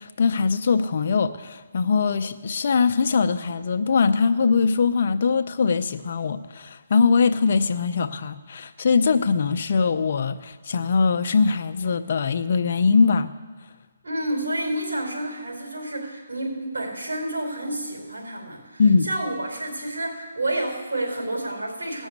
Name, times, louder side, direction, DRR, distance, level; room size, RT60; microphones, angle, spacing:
voice 1, 0.0-13.3 18.8-19.1, left 5 dB, 50° left, 0.7 m, -21 dB
voice 2, 14.0-22.1, right 1 dB, 90° right, 4.7 m, -29 dB
17.0 x 6.3 x 8.1 m
hypercardioid pair, 160°, 0 cm